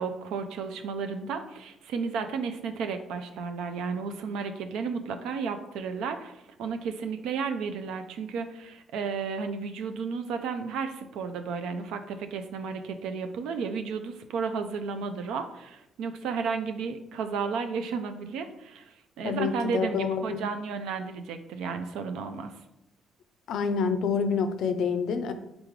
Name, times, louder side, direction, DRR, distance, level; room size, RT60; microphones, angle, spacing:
voice 1, 0.0-22.5, right 5 dB, 90° right, 7 dB, 0.4 m, -33 dB
voice 2, 19.2-20.4 23.5-25.3, left 5 dB, 80° left, 9 dB, 0.4 m, -27 dB
3.8 x 3.6 x 3.1 m, 0.87 s
cardioid pair, 90°, 0 cm